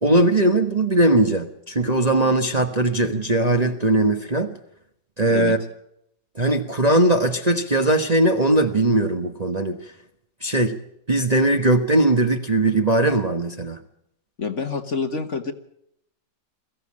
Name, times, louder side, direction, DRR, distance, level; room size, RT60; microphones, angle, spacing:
voice 1, 0.0-4.5 5.2-5.6 6.4-9.8 10.4-10.8 11.1-13.8, right 2 dB, 25° right, 1.1 m, -19 dB
voice 2, 14.4-15.5, left 5 dB, 45° left, 1.6 m, -27 dB
22.0 x 15.0 x 8.6 m
omnidirectional pair, 1.9 m